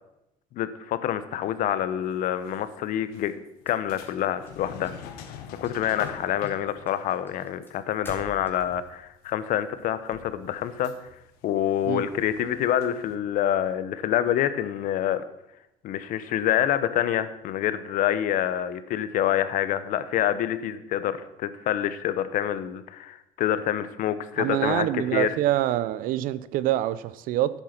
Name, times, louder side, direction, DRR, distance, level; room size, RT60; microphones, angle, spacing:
voice 1, 0.5-3.3 3.7-4.9 5.5-10.9 11.4-15.2 15.8-25.3, left 11 dB, 65° left, 0.9 m, -27 dB
sound 1, 2.2-2.6 3.1-9.4 9.7-13.2, left 8 dB, 80° left, 1.3 m, -45 dB
sound 2, 3.6-4.9 5.2-5.8 6.1-8.9, left 1 dB, 15° left, 3.7 m, -45 dB
voice 2, 24.4-27.5, right 13 dB, 70° right, 0.6 m, -25 dB
10.5 x 8.1 x 6.0 m
supercardioid pair, 95°, 15 cm